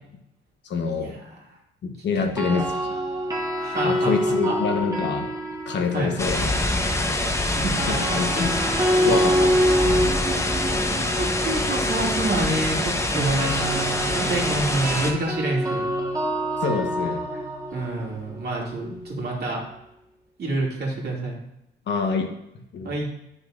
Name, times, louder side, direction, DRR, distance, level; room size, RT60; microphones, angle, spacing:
voice 1, 0.6-1.1 1.8-2.7 3.8-5.3 5.7-6.6 7.3-7.4 7.9-8.5 9.0-10.2 16.6-17.4 18.9-19.0 21.9-22.3 22.7-23.0, left 5 dB, 65° left, 3 dB, 1.2 m, -26 dB
sound 1, 2.2-6.3 7.6-19.4, equal, 15° right, 1.5 m, -26 dB
voice 2, 3.6-4.1 4.4-4.6 5.9-6.1 7.4-8.0 9.0-9.1 10.9-13.6 14.1-15.8 17.7-19.6 20.4-21.4 22.8-23.1, right 2 dB, 55° right, -2 dB, 2.5 m, -27 dB
sound 2, 6.2-15.1, left 1 dB, 15° left, 1.0 m, -25 dB
9.8 x 6.3 x 2.6 m, 0.84 s
cardioid pair, 90°, 20 cm